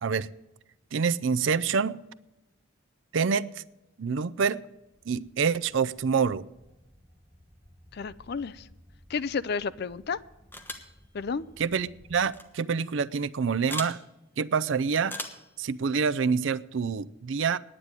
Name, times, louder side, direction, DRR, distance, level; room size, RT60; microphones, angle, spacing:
voice 1, 0.9-2.0 3.1-3.6 4.0-4.6 5.1-6.4 11.6-14.0 14.4-15.1 15.6-17.6, right 5 dB, 70° right, 16 dB, 0.5 m, -26 dB
sound 1, 4.7-12.3, equal, 10° right, 1.2 m, -57 dB
voice 2, 7.9-8.7 9.1-10.2 11.1-11.5, left 5 dB, 55° left, 17 dB, 0.4 m, -31 dB
sound 2, 10.5-10.9 12.2-12.4 13.7-14.0 15.0-15.5, left 1 dB, 10° left, 1.2 m, -37 dB
9.9 x 8.9 x 9.6 m, 0.94 s
head